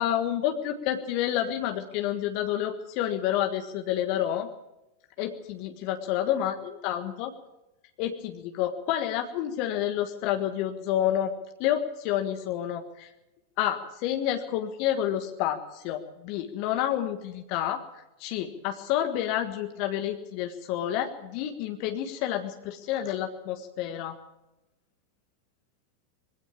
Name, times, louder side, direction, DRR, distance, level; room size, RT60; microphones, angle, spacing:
voice 1, 0.0-4.5 5.2-6.5 6.8-7.3 8.0-11.3 11.6-13.1 13.6-24.2, left 11 dB, 45° left, 6 dB, 1.5 m, -29 dB
22.0 x 16.0 x 7.4 m, 0.96 s
figure-of-eight pair, 90°, 0 cm